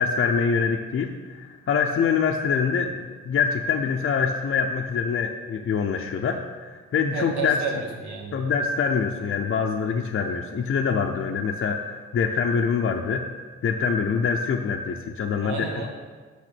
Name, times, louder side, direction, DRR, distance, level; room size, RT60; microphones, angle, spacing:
voice 1, 0.0-7.6 8.3-13.3 13.6-15.9, left 6 dB, 45° left, 2 dB, 0.6 m, -25 dB
voice 2, 7.1-8.4 15.4-15.9, right 4 dB, 70° right, 0 dB, 1.8 m, -31 dB
6.3 x 5.7 x 6.0 m, 1.4 s
cardioid pair, 90°, 30 cm